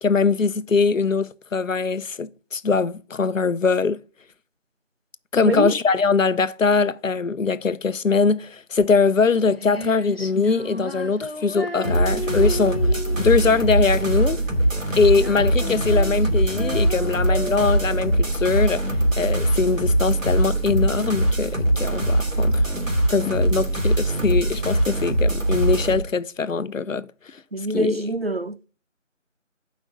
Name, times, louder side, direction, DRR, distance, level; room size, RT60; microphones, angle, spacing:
voice 1, 0.0-4.0 5.3-14.4 15.0-18.8 19.2-22.6 23.1-27.4 27.7-28.0, left 4 dB, 85° left, 0.8 m, -22 dB
voice 2, 5.4-5.8 27.5-28.7, right 1 dB, 55° right, 0.5 m, -25 dB
Female singing, 9.1-20.0, left 1 dB, 50° left, 0.9 m, -34 dB
sound 1, 11.8-26.0, right 1 dB, 85° right, 3.1 m, -22 dB
11.5 x 5.3 x 3.9 m
figure-of-eight pair, 180°, 38 cm